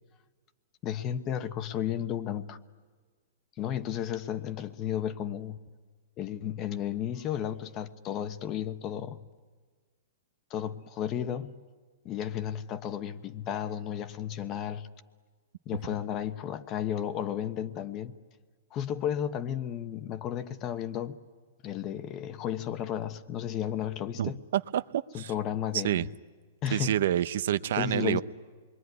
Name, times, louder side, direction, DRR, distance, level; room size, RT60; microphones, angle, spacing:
voice 1, 0.8-2.6 3.6-5.6 6.2-9.2 10.5-11.6 12.0-14.9 15.7-18.1 18.7-21.2 21.6-24.4 25.1-26.1 26.6-27.0 27.8-28.2, left 10 dB, 25° left, 1.1 m, -33 dB
voice 2, 24.2-25.3 25.7-26.1 26.7-28.2, right 11 dB, 65° right, 0.8 m, -28 dB
27.5 x 22.5 x 9.6 m
hypercardioid pair, 155°, 0 cm